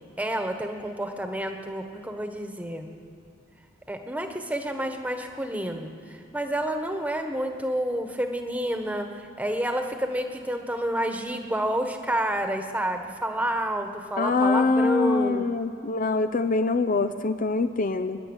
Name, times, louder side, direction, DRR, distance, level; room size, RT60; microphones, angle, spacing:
voice 1, 0.2-2.9 3.9-9.1 9.4-15.5, right 1 dB, 10° right, 5 dB, 1.4 m, -29 dB
voice 2, 14.2-18.2, left 3 dB, 45° left, 10 dB, 0.6 m, -24 dB
29.0 x 11.0 x 9.0 m, 2.3 s
head